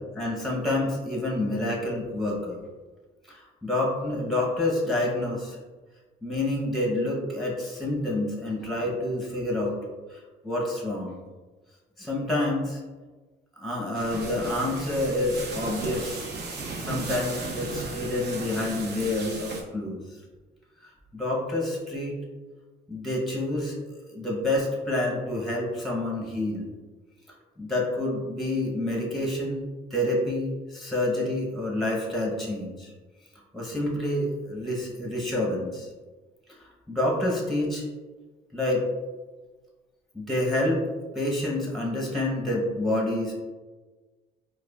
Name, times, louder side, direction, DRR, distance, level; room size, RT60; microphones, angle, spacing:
voice 1, 0.0-2.6 3.3-5.6 6.2-9.8 10.1-11.2 12.0-12.8 13.6-16.2 16.8-20.0 20.8-22.2 22.9-23.7 24.1-26.7 27.6-29.6 29.9-32.9 33.5-35.9 36.6-37.9 38.5-38.9 40.1-40.9 41.1-43.3, left 1 dB, ahead, -2 dB, 0.8 m, -28 dB
sound 1, 13.9-19.6, right 3 dB, 55° right, 0.7 m, -35 dB
4.5 x 2.4 x 2.3 m, 1.3 s
cardioid pair, 90°, 20 cm